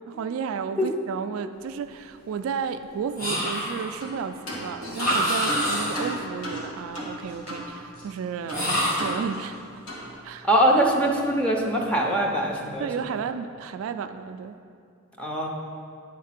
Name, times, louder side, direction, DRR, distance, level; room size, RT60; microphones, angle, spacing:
voice 1, 0.1-9.8 10.2-10.5 12.8-14.6, right 6 dB, 70° right, 10 dB, 0.3 m, -33 dB
sound 1, 3.2-4.0 4.9-6.2 8.5-9.2, equal, 45° left, 1.5 m, -26 dB
sound 2, 4.0-4.2 4.5-7.7 8.0-8.1 8.5-9.6 9.9-10.1, equal, 75° left, 1.7 m, -35 dB
voice 2, 10.4-12.9 15.2-15.5, right 1 dB, 5° left, -1 dB, 0.7 m, -22 dB
9.6 x 3.6 x 5.8 m, 2.3 s
head